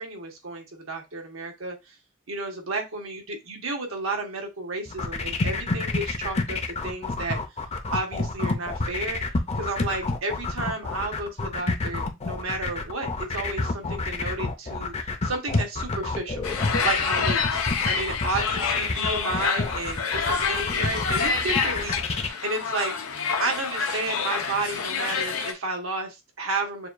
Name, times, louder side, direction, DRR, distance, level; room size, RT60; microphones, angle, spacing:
voice 1, 0.0-1.8 2.3-7.4 7.9-9.2 9.6-16.5 16.8-22.9 23.4-26.9, right 3 dB, 75° right, 2 dB, 1.3 m, -32 dB
sound 1, 4.9-22.3, left 3 dB, 30° left, 0.6 m, -28 dB
sound 2, 16.4-25.5, left 6 dB, 90° left, 0.7 m, -27 dB
6.8 x 2.3 x 2.5 m, 0.22 s
head